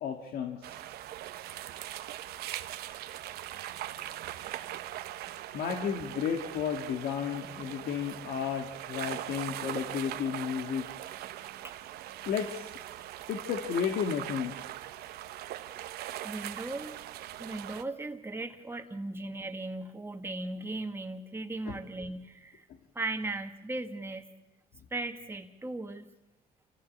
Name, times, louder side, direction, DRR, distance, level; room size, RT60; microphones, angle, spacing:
voice 1, 0.0-0.8 5.5-10.9 12.3-12.7 13.3-14.5 16.0-16.1 21.7-21.8, left 7 dB, 75° left, 4 dB, 1.9 m, -33 dB
sound 1, 0.6-17.8, right 13 dB, 85° right, 1.1 m, -41 dB
voice 2, 16.2-17.0 17.4-22.7 23.0-24.2 24.9-26.1, right 2 dB, 15° right, 5 dB, 1.8 m, -37 dB
28.5 x 15.0 x 8.5 m, 0.99 s
cardioid pair, 110°, 16 cm